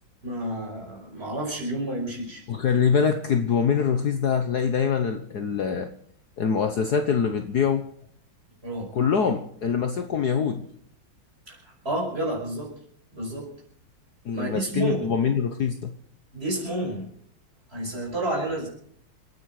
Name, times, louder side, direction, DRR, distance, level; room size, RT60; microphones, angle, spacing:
voice 1, 0.2-2.4 8.6-8.9 11.5-11.6 11.8-12.7 13.1-13.5 14.3-15.1 16.3-17.1 17.7-18.7, right 1 dB, 30° right, -1 dB, 5.9 m, -30 dB
voice 2, 2.5-5.9 6.4-7.8 8.9-10.6 14.2-15.9, left 6 dB, 55° left, 6 dB, 1.5 m, -24 dB
28.5 x 9.7 x 4.9 m, 0.63 s
omnidirectional pair, 2.3 m